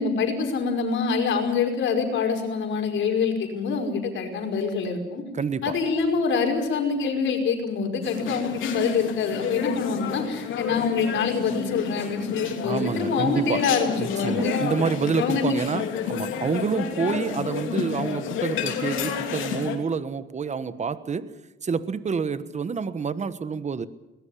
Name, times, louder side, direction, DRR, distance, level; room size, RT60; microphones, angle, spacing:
voice 1, 0.0-5.2 5.6-14.6 15.2-15.5, left 5 dB, 75° left, 4 dB, 5.3 m, -25 dB
voice 2, 5.3-5.7 12.6-13.7 14.0-23.9, right 5 dB, 35° right, 14 dB, 1.3 m, -28 dB
sound 1, 8.0-19.8, left 8 dB, 90° left, 3.0 m, -31 dB
22.0 x 19.5 x 8.6 m, 1.0 s
cardioid pair, 90°, 20 cm